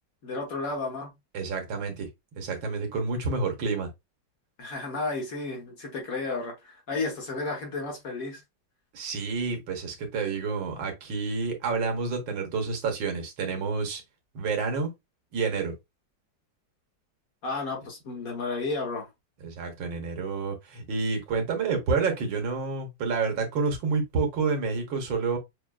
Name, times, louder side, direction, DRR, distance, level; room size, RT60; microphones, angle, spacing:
voice 1, 0.2-1.1 4.6-8.4 17.4-19.1, left 3 dB, 55° left, 1.4 m, -32 dB
voice 2, 1.3-2.1 2.4-3.9 8.9-14.0 14.4-14.9 15.3-15.7 19.4-25.4, right 4 dB, 85° right, 1.8 m, -29 dB
6.1 x 2.4 x 2.2 m
omnidirectional pair, 2.0 m